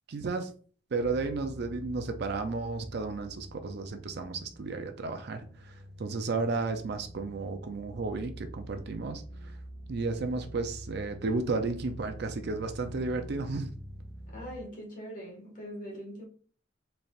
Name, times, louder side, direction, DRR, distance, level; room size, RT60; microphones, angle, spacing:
voice 1, 0.1-0.5 0.9-9.5 9.9-13.7, right 3 dB, 55° right, 0.4 m, -33 dB
sound 1, 1.0-14.6, equal, 65° left, 1.0 m, -46 dB
voice 2, 14.3-16.3, equal, 45° left, 1.6 m, -42 dB
4.2 x 3.3 x 2.4 m
head